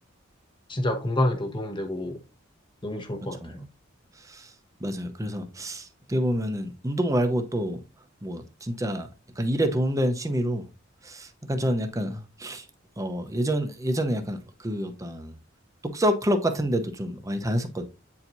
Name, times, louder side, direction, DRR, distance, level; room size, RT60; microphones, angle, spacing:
voice 1, 0.7-2.2 2.8-3.6, left 1 dB, 25° left, 1.0 m, -28 dB
voice 2, 4.2-4.5 4.8-7.8 8.2-9.1 9.4-10.7 11.0-12.7 13.0-15.3 15.8-17.8, equal, 15° right, 0.8 m, -27 dB
8.5 x 4.5 x 2.7 m
head